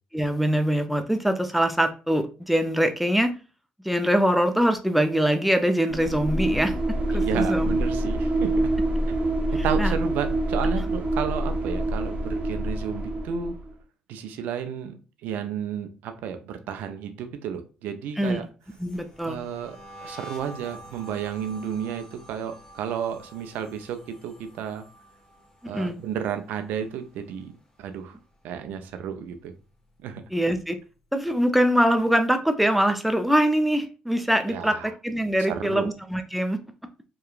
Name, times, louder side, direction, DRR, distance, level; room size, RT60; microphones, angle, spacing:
voice 1, 0.1-3.3 3.8-6.7 7.1-7.7 9.8-9.9 18.2-18.4 18.8-19.4 25.7-26.0 30.3-30.8 31.1-36.6, equal, ahead, 7 dB, 0.5 m, -23 dB
sound 1, 5.9-13.7, right 1 dB, 45° right, 0.7 m, -26 dB
voice 2, 7.3-8.5 9.6-13.5 14.1-18.5 19.3-19.8 20.0-24.8 25.7-27.5 27.8-28.2 28.4-29.5 30.0-30.2 34.5-34.9 35.5-35.9, right 8 dB, 80° right, 8 dB, 0.4 m, -32 dB
sound 2, 18.6-27.8 28.1-28.5 28.8-30.4, right 1 dB, 25° left, 0.8 m, -48 dB
2.9 x 2.3 x 2.3 m, 0.34 s
supercardioid pair, 65°, 3 cm